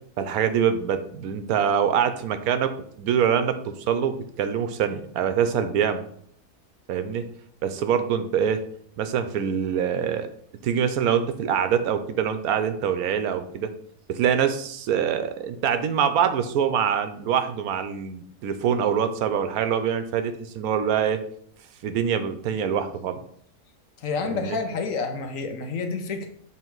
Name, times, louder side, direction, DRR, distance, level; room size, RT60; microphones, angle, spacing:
voice 1, 0.2-2.7 3.0-6.0 6.9-7.3 7.6-8.6 9.0-10.3 10.6-13.7 14.1-21.2 21.8-23.2 24.3-24.6, right 8 dB, 80° right, 9 dB, 1.1 m, -24 dB
voice 2, 24.0-26.3, left 4 dB, 65° left, 6 dB, 1.1 m, -29 dB
7.1 x 3.2 x 4.5 m, 0.63 s
omnidirectional pair, 1.6 m